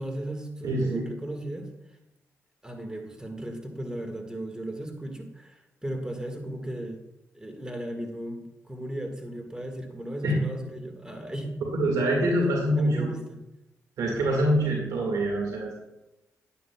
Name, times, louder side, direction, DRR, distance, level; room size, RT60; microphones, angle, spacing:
voice 1, 0.0-1.7 2.6-7.1 7.3-11.6 12.7-13.4, right 1 dB, 10° right, 4 dB, 1.7 m, -36 dB
voice 2, 0.6-1.1 10.2-10.4 11.7-13.1 14.0-15.8, right 1 dB, 80° right, -1 dB, 1.9 m, -25 dB
10.0 x 9.5 x 2.3 m, 0.93 s
cardioid pair, 65°, 6 cm